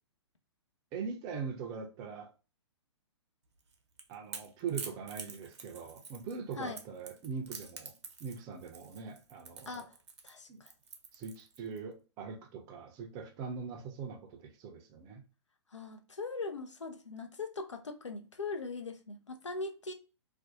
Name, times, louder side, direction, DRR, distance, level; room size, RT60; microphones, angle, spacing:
voice 1, 0.9-2.3 4.1-9.9 10.5-10.6 11.1-15.2, right 5 dB, 25° right, 0.5 m, -42 dB
Crackle / Crack, 3.6-11.8, right 5 dB, 65° right, 0.6 m, -47 dB
voice 2, 9.7-10.0 10.2-10.7 15.7-19.9, left 3 dB, 80° left, 0.5 m, -40 dB
2.5 x 2.1 x 2.5 m
figure-of-eight pair, 115°, 15 cm